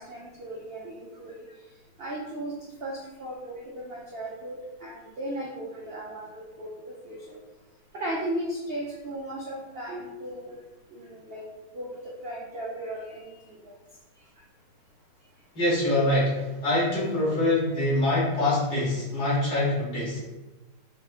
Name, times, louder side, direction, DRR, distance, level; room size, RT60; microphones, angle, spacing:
voice 1, 0.0-1.4 2.0-6.3 6.6-7.4 7.9-10.5 10.9-11.4 11.7-11.9 12.2-13.7, right 1 dB, 85° right, -4 dB, 0.5 m, -36 dB
voice 2, 15.6-20.2, left 1 dB, 65° left, -7 dB, 1.8 m, -24 dB
5.5 x 2.7 x 2.4 m, 1.1 s
omnidirectional pair, 1.9 m